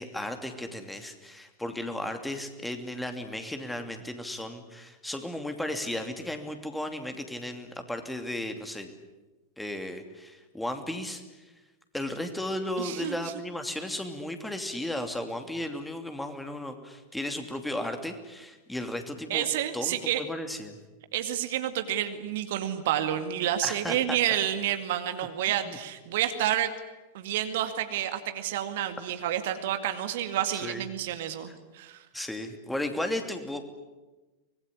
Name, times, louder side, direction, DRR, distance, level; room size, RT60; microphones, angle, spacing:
voice 1, 0.0-8.9 9.6-11.2 11.9-19.5 19.7-20.8 23.6-24.2 25.6-25.8 26.4-26.5 30.5-30.8 32.1-33.7, left 1 dB, 5° left, 6 dB, 2.8 m, -35 dB
voice 2, 12.8-13.3 19.3-20.2 21.1-26.7 27.1-32.0, right 11 dB, 55° right, 8 dB, 2.1 m, -29 dB
24.5 x 21.0 x 10.0 m, 1.1 s
figure-of-eight pair, 90°, 0 cm